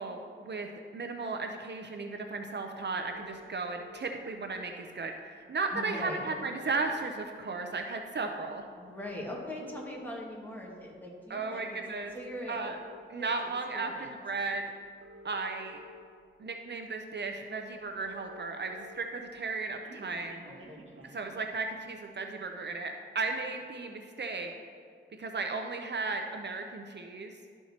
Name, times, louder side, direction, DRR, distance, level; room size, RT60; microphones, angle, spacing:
voice 1, 0.0-8.6 11.3-12.1 12.5-12.8 13.1-14.6 15.2-15.8 16.4-20.4 21.1-24.5 25.2-27.3, right 3 dB, 55° right, 4 dB, 0.5 m, -35 dB
sound 1, 3.0-4.0 5.2-5.3 5.6-5.7 5.9-7.3 7.8-8.0 8.9-10.0 10.7-11.0 11.9-13.0 14.2-14.3 14.8-16.0 16.7-16.8 17.1-17.2 17.4-17.5 17.7-19.0 19.3-21.5, equal, 75° right, 1.1 m, -52 dB
voice 2, 5.7-6.2 8.7-11.8 12.1-12.8 13.1-14.1 20.4-21.0, left 1 dB, 10° left, -3 dB, 1.8 m, -42 dB
12.5 x 4.5 x 2.8 m, 2.1 s
cardioid pair, 55°, 21 cm